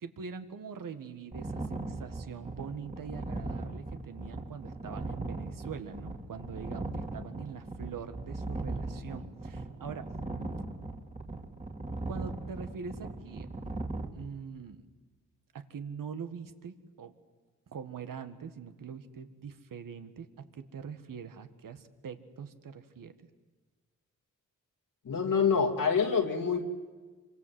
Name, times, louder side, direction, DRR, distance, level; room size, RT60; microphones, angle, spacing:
voice 1, 0.0-10.1 12.1-13.5 14.1-14.8 15.5-17.1 17.7-23.1, right 6 dB, 80° right, 8 dB, 1.8 m, -43 dB
sound 1, 1.3-14.1, right 2 dB, 25° right, 2.4 m, -39 dB
voice 2, 25.0-26.6, left 6 dB, 80° left, 4 dB, 2.8 m, -26 dB
27.5 x 24.5 x 7.9 m, 1.4 s
wide cardioid pair, 95°, 33 cm